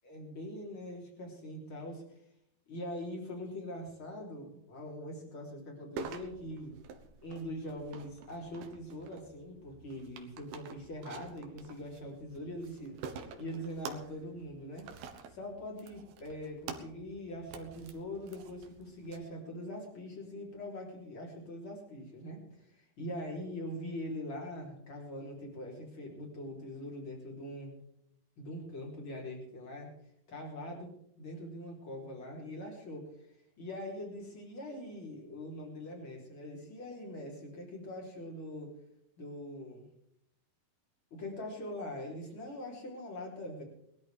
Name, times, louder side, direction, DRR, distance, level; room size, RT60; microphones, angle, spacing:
voice 1, 0.0-2.2 2.7-6.8 7.2-13.0 13.4-22.7 23.0-27.8 28.4-29.9 30.3-38.7 39.2-39.8 41.1-43.6, left 1 dB, 35° left, -1 dB, 4.1 m, -43 dB
sound 1, 6.0-19.2, right 6 dB, 80° right, 3.0 m, -48 dB
21.0 x 13.5 x 3.5 m, 0.74 s
omnidirectional pair, 4.5 m